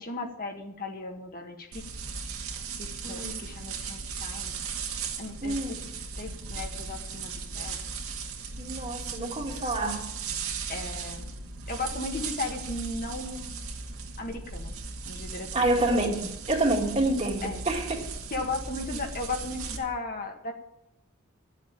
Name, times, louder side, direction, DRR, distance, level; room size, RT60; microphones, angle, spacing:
voice 1, 0.0-1.8 2.8-4.6 5.2-5.6 6.2-7.8 10.7-11.3 11.7-13.6 14.2-14.7 15.0-15.7 17.4-17.6 18.3-20.5, left 3 dB, 45° left, 1.7 m, -36 dB
sound 1, 1.7-19.8, right 5 dB, 80° right, 2.0 m, -37 dB
voice 2, 5.4-5.7 8.6-10.1 15.5-18.0, right 2 dB, 30° right, 2.3 m, -27 dB
12.0 x 7.4 x 8.9 m
head